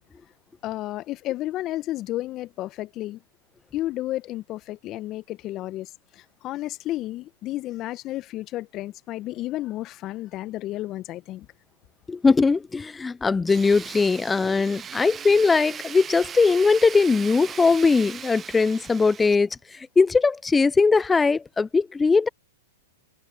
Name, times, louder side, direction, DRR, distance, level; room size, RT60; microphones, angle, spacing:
voice 1, 0.6-3.2 3.7-11.5, left 15 dB, 35° left, 1.7 m, -32 dB
voice 2, 12.1-22.3, left 4 dB, 10° left, 0.7 m, -20 dB
Tools, 13.5-19.4, right 8 dB, 20° right, 0.8 m, -39 dB
hypercardioid pair, 110°, 0 cm